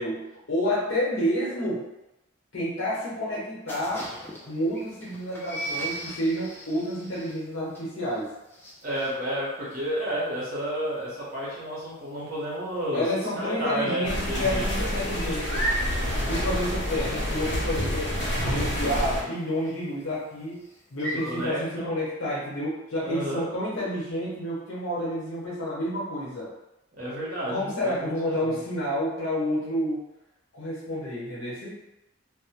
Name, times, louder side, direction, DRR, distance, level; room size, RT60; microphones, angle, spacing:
voice 1, 0.0-1.9 2.5-4.1 4.5-8.3 12.9-15.7 16.2-18.1 18.4-26.5 27.5-30.0 30.5-31.8, equal, 70° left, -6 dB, 0.9 m, -29 dB
sound 1, 3.7-13.2 13.4-13.8 14.1-21.5, right 1 dB, 10° left, 0.3 m, -37 dB
voice 2, 8.8-13.0 13.4-14.9 21.2-21.9 23.0-23.5 27.0-28.1 28.4-28.6, right 1 dB, 40° right, -6 dB, 0.8 m, -31 dB
sound 2, 14.0-19.2, equal, 55° left, 0.6 m, -28 dB
2.1 x 2.1 x 2.8 m, 0.93 s
head